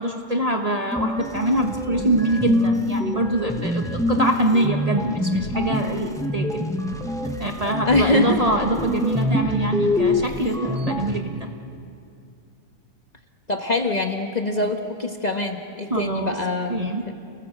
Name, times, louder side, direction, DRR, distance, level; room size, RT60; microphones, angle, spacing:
voice 1, 0.0-6.6 7.4-11.5 15.9-16.4 16.7-17.1, right 1 dB, 25° right, 2 dB, 1.2 m, -24 dB
sound 1, 0.9-11.2, left 1 dB, 5° left, 1.1 m, -25 dB
voice 2, 7.8-8.4 13.5-17.1, left 2 dB, 30° left, 4 dB, 1.3 m, -24 dB
29.5 x 19.0 x 7.9 m, 2.4 s
omnidirectional pair, 1.6 m